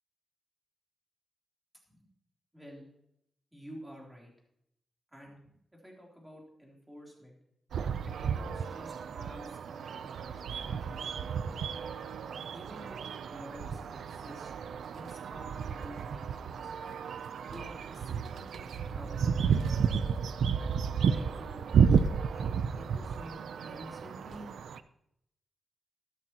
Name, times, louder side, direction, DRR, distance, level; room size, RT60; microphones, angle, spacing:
voice 1, 2.5-2.9 3.5-4.3 5.1-5.4 5.7-7.4 8.0-11.5 12.5-14.5 14.8-16.7 17.5-19.7 21.0-21.7 22.3-24.5, equal, 10° right, -2 dB, 3.4 m, -50 dB
sound 1, 7.7-24.8, right 6 dB, 85° right, 0.5 m, -32 dB
13.5 x 12.5 x 3.0 m, 0.75 s
wide cardioid pair, 150°, 0 cm